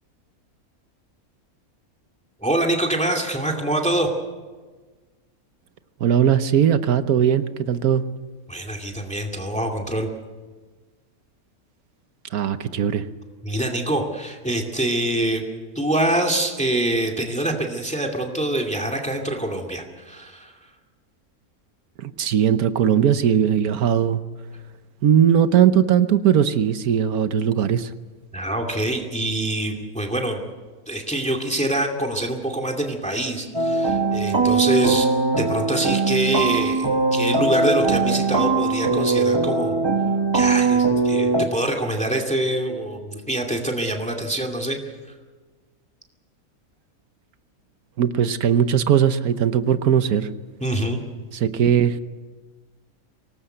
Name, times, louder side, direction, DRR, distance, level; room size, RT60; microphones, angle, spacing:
voice 1, 2.4-4.1 8.5-10.1 13.4-15.4 15.8-20.5 28.3-30.4 30.9-35.1 35.4-39.8 40.3-44.8 50.6-51.0, right 1 dB, 5° left, 2 dB, 2.3 m, -25 dB
voice 2, 6.0-8.0 12.3-13.0 22.0-24.2 25.0-27.9 48.0-50.3 51.3-52.0, right 9 dB, 80° right, 11 dB, 1.4 m, -19 dB
sound 1, 33.5-41.5, right 3 dB, 20° right, 1.1 m, -20 dB
25.0 x 19.0 x 7.9 m, 1.4 s
omnidirectional pair, 1.5 m